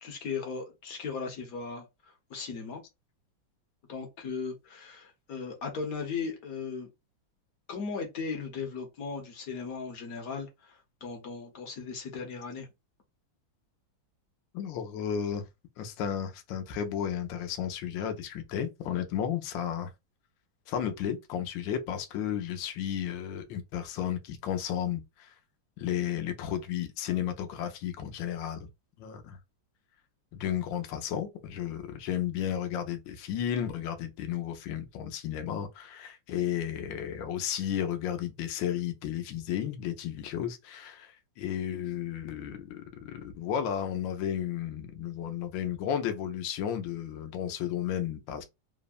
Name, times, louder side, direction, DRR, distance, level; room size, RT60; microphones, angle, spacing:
voice 1, 0.0-1.8 2.3-2.8 3.9-6.9 7.7-12.7, left 5 dB, 60° left, 1.1 m, -37 dB
voice 2, 14.5-15.5 15.8-19.9 20.7-25.3 25.8-28.7 29.0-29.4 30.3-48.4, left 9 dB, 85° left, 1.3 m, -33 dB
3.4 x 2.0 x 2.3 m
omnidirectional pair, 2.0 m